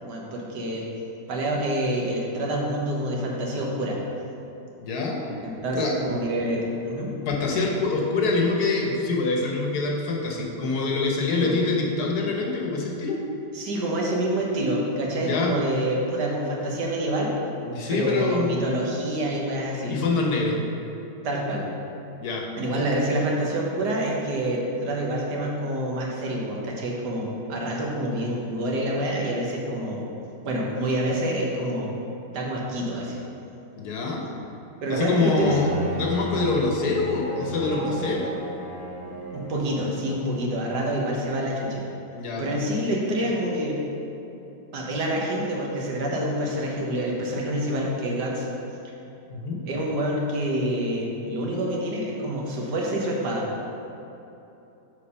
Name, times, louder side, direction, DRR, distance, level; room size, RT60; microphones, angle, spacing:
voice 1, 0.0-0.8 1.3-4.0 5.4-7.1 11.3-11.5 13.5-17.4 17.9-20.0 21.2-21.6 22.6-30.0 30.4-31.9 32.3-33.2 34.8-35.6 39.3-41.8 42.4-43.8 44.7-48.5 49.6-53.4, right 1 dB, 75° right, -2 dB, 1.7 m, -27 dB
voice 2, 4.8-5.2 5.7-5.9 7.3-13.2 15.2-15.5 17.6-18.6 19.9-20.6 22.2-22.4 33.8-34.2 34.9-38.4 42.1-42.4 49.3-49.6, left 3 dB, 65° left, -1 dB, 1.5 m, -25 dB
Bowed string instrument, 35.4-40.2, left 1 dB, 5° left, 1.4 m, -34 dB
6.8 x 4.7 x 5.5 m, 3.0 s
omnidirectional pair, 1.8 m